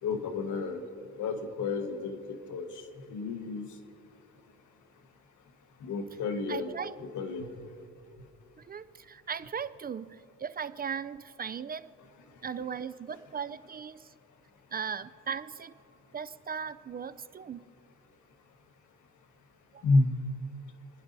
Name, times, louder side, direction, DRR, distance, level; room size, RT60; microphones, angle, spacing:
voice 1, 0.0-0.8 1.2-2.7 3.1-3.7 5.8-6.7 7.0-7.5 19.8-20.1, left 3 dB, 75° left, 6 dB, 1.4 m, -30 dB
voice 2, 6.5-7.0 8.6-11.9 12.4-14.1 14.7-15.8 16.1-17.7 19.7-19.8, right 7 dB, 30° right, 14 dB, 0.4 m, -38 dB
30.0 x 11.0 x 2.7 m, 2.6 s
cardioid pair, 90°, 30 cm